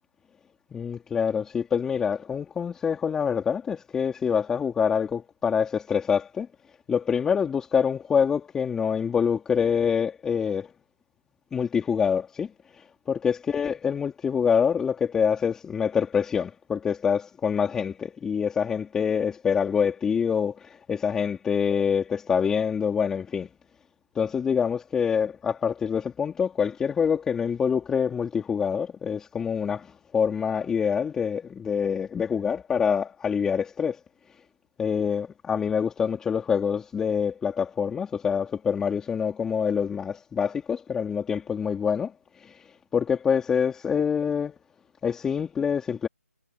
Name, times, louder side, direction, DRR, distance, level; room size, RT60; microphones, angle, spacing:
voice 1, 0.7-6.5 6.9-10.7 11.5-12.5 12.8-23.5 24.2-34.0 34.8-42.1 42.4-42.6 42.9-44.6 45.0-46.1, left 7 dB, 5° left, 3.6 m, -26 dB
figure-of-eight pair, 155°, 8 cm